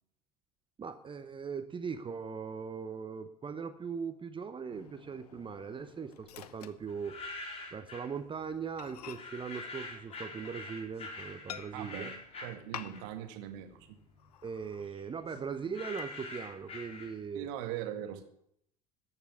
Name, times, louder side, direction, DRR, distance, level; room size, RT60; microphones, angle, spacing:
voice 1, 0.8-7.2 7.7-12.1 14.4-17.5, right 6 dB, 25° right, 9 dB, 0.9 m, -40 dB
Microwave oven, 4.7-7.6 7.9-8.1 8.4-8.5 8.8-10.9 11.5-12.1 12.7-13.3 13.6-13.7 14.2-14.9 15.4-16.0, left 10 dB, 70° left, 0.8 m, -49 dB
sound 1, 6.9-8.1 9.1-13.3 13.7-17.4, left 2 dB, 30° left, 4.8 m, -45 dB
voice 2, 11.7-13.9 17.3-18.2, right 11 dB, 55° right, 6 dB, 2.0 m, -40 dB
14.0 x 6.9 x 9.5 m, 0.73 s
figure-of-eight pair, 65°, 21 cm